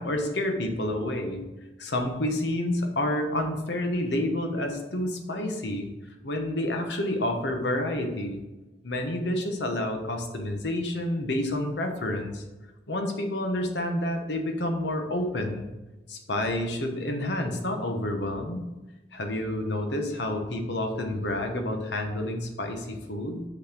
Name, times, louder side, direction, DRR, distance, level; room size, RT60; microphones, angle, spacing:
voice 1, 0.0-1.4 1.8-5.9 6.2-8.4 8.8-12.4 12.9-15.7 16.1-18.7 19.1-23.4, left 1 dB, 70° left, 4 dB, 1.1 m, -29 dB
6.2 x 4.1 x 5.9 m, 1.1 s
head